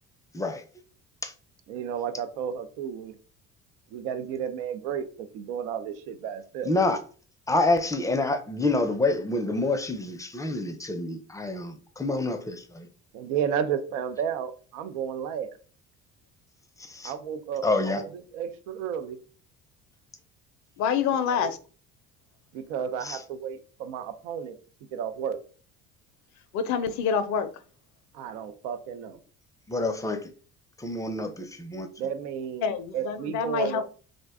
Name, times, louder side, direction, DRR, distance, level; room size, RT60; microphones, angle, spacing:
voice 1, 1.7-3.2 3.9-6.7 13.1-15.6 17.0-19.2 21.3-21.5 22.5-24.6 24.9-25.4 28.1-29.2 32.0-33.8, right 8 dB, 85° right, 0.5 m, -32 dB
voice 2, 6.6-7.0 7.5-12.9 16.8-17.1 17.6-18.0 23.0-23.2 29.7-30.3 30.8-31.9, left 2 dB, 10° left, 0.4 m, -27 dB
voice 3, 20.8-21.6 26.5-27.5 32.6-33.8, left 7 dB, 65° left, 0.5 m, -26 dB
2.5 x 2.1 x 3.5 m
supercardioid pair, 75°, 32 cm